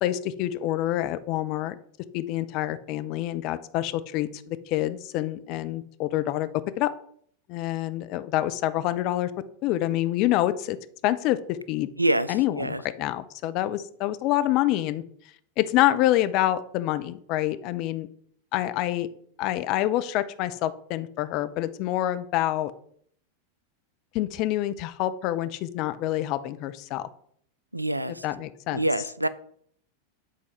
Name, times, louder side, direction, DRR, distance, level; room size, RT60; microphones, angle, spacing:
voice 1, 0.0-1.8 2.1-6.5 6.8-6.9 7.5-9.3 9.6-10.8 11.0-11.9 12.3-15.0 15.6-18.1 18.5-19.1 19.4-22.7 24.1-27.1 28.2-28.8, left 14 dB, 40° left, 0.5 m, -27 dB
voice 2, 12.0-12.8 27.7-28.3 28.7-29.3, right 1 dB, 85° right, 0.3 m, -26 dB
7.4 x 4.1 x 4.6 m
figure-of-eight pair, 90°, 0 cm